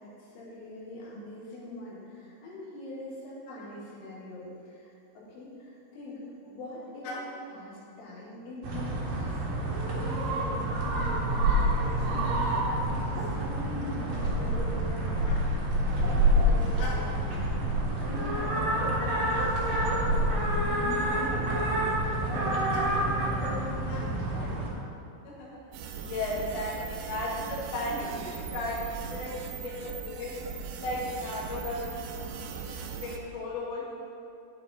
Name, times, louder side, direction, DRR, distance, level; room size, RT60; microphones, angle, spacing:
voice 1, 0.0-15.5 15.7-16.7 16.9-17.5 18.0-24.6 29.5-29.7, left 1 dB, 80° left, -7 dB, 4.8 m, -43 dB
sound 1, 8.6-24.7, right 1 dB, 55° right, 2.7 m, -27 dB
voice 2, 16.7-17.1 19.0-19.4 22.7-22.8 23.9-24.0 25.2-25.6 26.0-30.3 30.8-32.2 32.6-34.0, left 1 dB, 50° left, -7 dB, 3.0 m, -36 dB
sound 2, 25.7-33.2, right 6 dB, 80° right, 2.4 m, -39 dB
10.5 x 8.7 x 4.2 m, 2.6 s
omnidirectional pair, 5.6 m